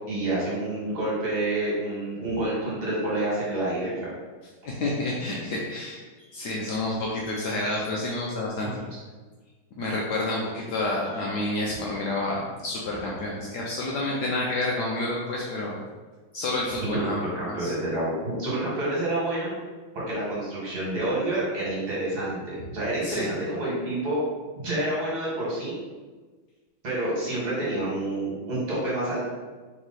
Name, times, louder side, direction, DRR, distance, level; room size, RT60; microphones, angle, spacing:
voice 1, 0.1-4.1 8.6-8.7 16.9-19.5 19.9-24.2 24.6-25.8 26.8-29.3, right 1 dB, 50° right, -7 dB, 1.9 m, -28 dB
voice 2, 4.6-8.8 9.8-15.7 16.3-17.2 17.5-17.7 23.0-23.3, left 2 dB, 70° left, -3 dB, 1.0 m, -29 dB
3.6 x 3.1 x 4.0 m, 1.3 s
omnidirectional pair, 2.2 m